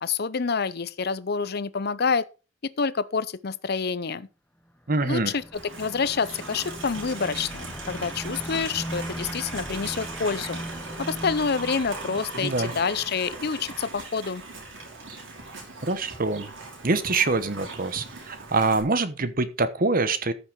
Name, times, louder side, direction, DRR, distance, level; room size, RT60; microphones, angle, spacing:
voice 1, 0.0-2.2 2.6-4.3 5.0-10.6 11.0-14.4, left 5 dB, 55° left, 0.7 m, -27 dB
voice 2, 4.9-5.3 12.4-12.7 15.8-16.5 16.8-20.3, right 3 dB, 50° right, 1.0 m, -25 dB
sound 1, 5.2-13.5, equal, 10° left, 1.0 m, -39 dB
Livestock farm animals working animals, 5.5-18.8, right 3 dB, 80° right, 4.7 m, -40 dB
13.5 x 6.1 x 4.7 m
head